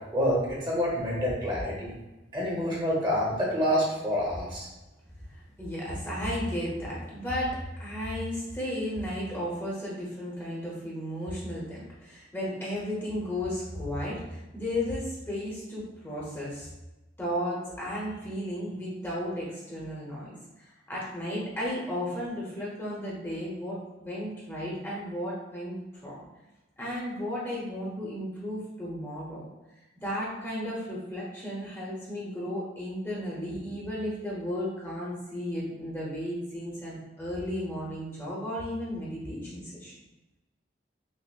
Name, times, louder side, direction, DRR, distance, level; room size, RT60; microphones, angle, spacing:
voice 1, 0.1-1.9 2.3-4.6, equal, 25° right, -5 dB, 0.8 m, -27 dB
voice 2, 5.3-16.7 17.2-25.8 26.0-26.3 26.8-29.5 30.0-40.0, equal, 10° left, -6 dB, 0.7 m, -34 dB
6.0 x 2.0 x 2.4 m, 1.1 s
head